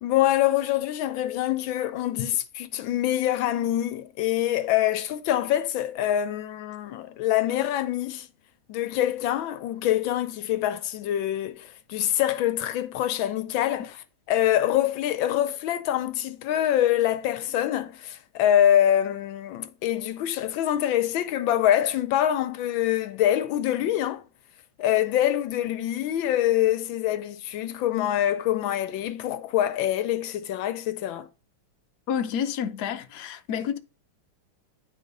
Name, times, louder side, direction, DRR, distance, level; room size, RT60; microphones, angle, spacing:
voice 1, 0.0-8.3 8.7-14.0 14.3-24.2 24.8-31.3, left 12 dB, 85° left, 1.5 m, -25 dB
voice 2, 32.1-33.8, left 8 dB, 65° left, 1.3 m, -29 dB
10.5 x 3.9 x 5.2 m
omnidirectional pair, 2.1 m